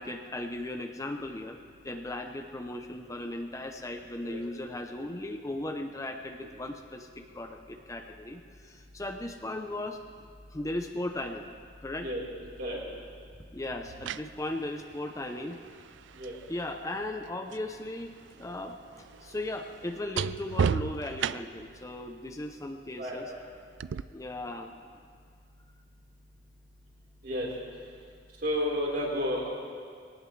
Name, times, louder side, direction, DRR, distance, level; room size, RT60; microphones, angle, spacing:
voice 1, 0.0-1.6 1.8-10.0 10.5-11.5 11.8-12.1 13.5-15.6 16.5-23.3 24.1-24.7, left 1 dB, 15° left, 5 dB, 0.6 m, -37 dB
sound 1, 12.4-12.6 13.7-17.7 18.0-21.7 23.8-24.0, right 7 dB, 70° right, 0.3 m, -35 dB
voice 2, 23.0-23.4 27.2-27.5 28.4-29.5, equal, 55° right, -5 dB, 4.2 m, -31 dB
22.0 x 18.5 x 3.3 m, 2.1 s
head